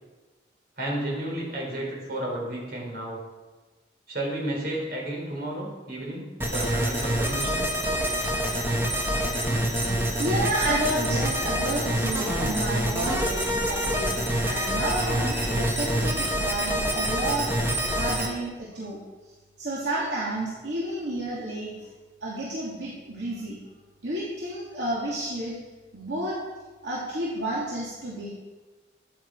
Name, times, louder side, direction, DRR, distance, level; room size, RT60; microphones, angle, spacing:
voice 1, 0.8-3.2 4.1-6.3 6.5-7.7, right 1 dB, 55° right, -2 dB, 4.3 m, -32 dB
sound 1, 6.4-18.3, equal, 15° right, 1.6 m, -26 dB
voice 2, 10.1-17.5 17.9-19.0 19.6-21.9 22.2-23.6 24.0-25.6 25.9-26.4 26.8-28.3, right 1 dB, 70° right, -7 dB, 2.7 m, -31 dB
13.0 x 10.0 x 4.8 m, 1.2 s
head